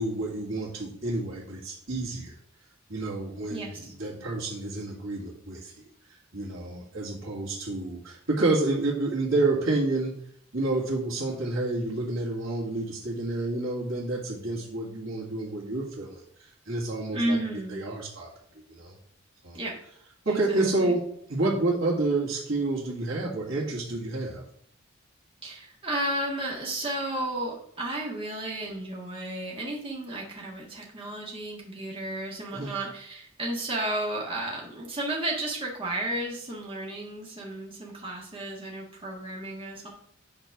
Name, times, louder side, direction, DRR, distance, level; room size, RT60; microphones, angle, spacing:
voice 1, 0.0-2.3 2.9-5.7 6.3-10.1 10.5-17.4 17.7-18.3 18.7-19.0 19.4-19.6 20.2-21.0 21.3-24.4 32.5-32.7, right 2 dB, 75° right, -7 dB, 2.3 m, -29 dB
voice 2, 3.5-3.8 17.1-17.9 19.5-19.7 20.3-20.9 25.4-39.9, right 1 dB, 25° right, -2 dB, 1.7 m, -33 dB
8.9 x 4.5 x 6.0 m, 0.66 s
head